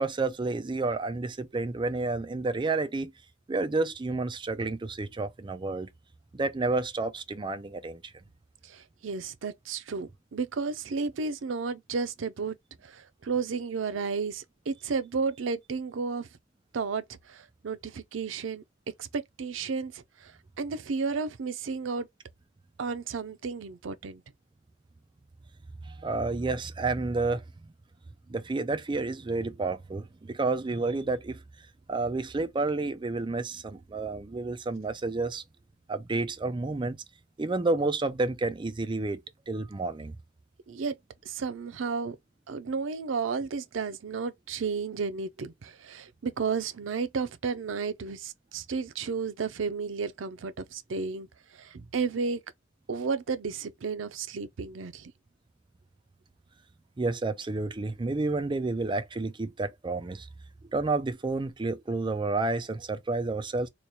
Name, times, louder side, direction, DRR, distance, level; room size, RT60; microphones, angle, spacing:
voice 1, 0.0-3.1 3.5-5.9 6.3-8.1 25.9-27.4 28.3-31.4 31.9-35.4 35.9-37.0 37.4-39.2 39.5-40.2 57.0-60.3 60.7-63.7, right 3 dB, 25° right, 0.4 m, -30 dB
voice 2, 8.6-12.5 12.8-16.3 16.7-18.6 19.0-20.3 20.6-22.1 22.8-24.2 40.7-41.0 41.2-42.2 42.5-51.3 51.5-52.4 52.9-55.1, right 5 dB, 85° right, 0.5 m, -32 dB
3.2 x 2.2 x 4.0 m
head